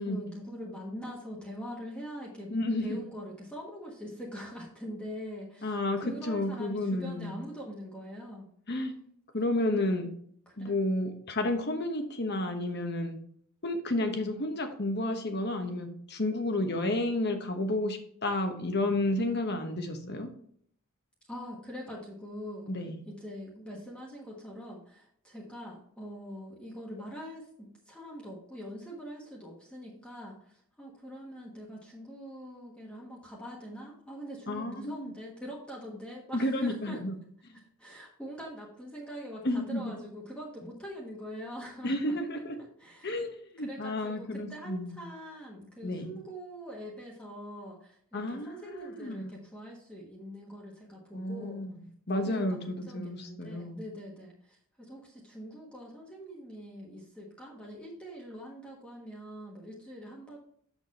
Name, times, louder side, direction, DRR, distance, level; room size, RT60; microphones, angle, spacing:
voice 1, 0.0-8.5 10.5-10.8 21.3-22.7 23.1-37.0 37.8-42.1 42.8-43.1 43.6-51.6 52.1-60.4, equal, 5° left, -4 dB, 1.3 m, -43 dB
voice 2, 2.5-3.0 5.6-7.3 8.7-8.9 9.3-10.1 10.6-13.2 13.6-20.3 22.7-23.0 34.5-35.1 36.3-37.2 39.4-39.9 41.8-42.6 43.0-45.0 45.8-46.1 48.1-49.3 51.1-51.8 52.1-53.8, left 1 dB, 50° left, 6 dB, 1.1 m, -31 dB
6.9 x 6.4 x 4.1 m, 0.63 s
head